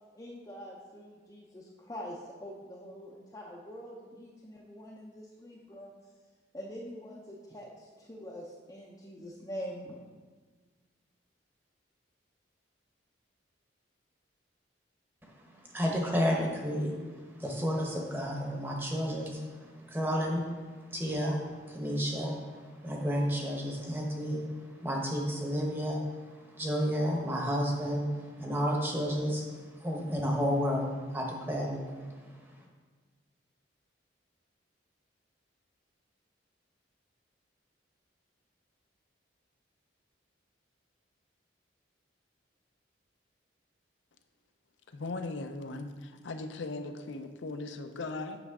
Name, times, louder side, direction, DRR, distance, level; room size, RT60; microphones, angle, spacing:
voice 1, 0.1-5.9 6.5-10.0, equal, 20° left, -4 dB, 0.5 m, -44 dB
voice 2, 15.2-20.5 20.7-32.4, equal, 10° right, -1 dB, 0.9 m, -32 dB
voice 3, 44.9-48.4, left 3 dB, 75° left, 7 dB, 0.5 m, -38 dB
8.0 x 5.9 x 3.6 m, 1.4 s
head